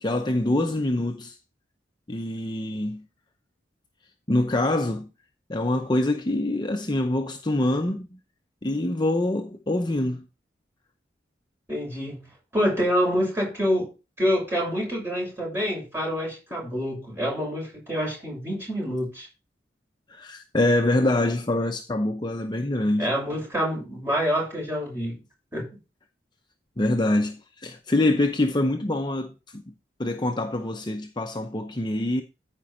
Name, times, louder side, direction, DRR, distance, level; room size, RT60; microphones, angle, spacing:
voice 1, 0.0-1.4 2.1-3.0 4.3-5.1 5.5-8.2 8.6-10.3 20.1-23.1 26.8-29.7 30.0-32.2, left 1 dB, 25° left, 0.7 m, -25 dB
voice 2, 11.7-12.2 12.5-13.9 14.2-19.3 23.0-25.2 25.5-25.7, equal, 15° right, 6.7 m, -26 dB
13.5 x 5.2 x 4.4 m
head